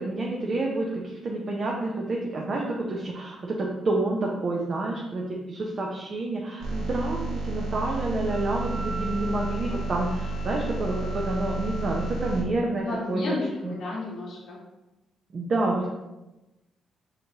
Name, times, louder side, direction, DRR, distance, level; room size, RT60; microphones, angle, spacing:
voice 1, 0.0-13.2 13.6-13.8 15.3-15.9, right 2 dB, 45° right, -2 dB, 0.6 m, -29 dB
sound 1, 6.6-12.4, right 1 dB, 85° right, 1.0 m, -32 dB
Wind instrument woodwind instrument, 8.3-12.3, right 1 dB, 10° left, 1.3 m, -41 dB
voice 2, 12.8-14.6, left 2 dB, 70° left, -5 dB, 0.9 m, -32 dB
5.0 x 2.9 x 2.8 m, 1.0 s
cardioid pair, 95°, 0 cm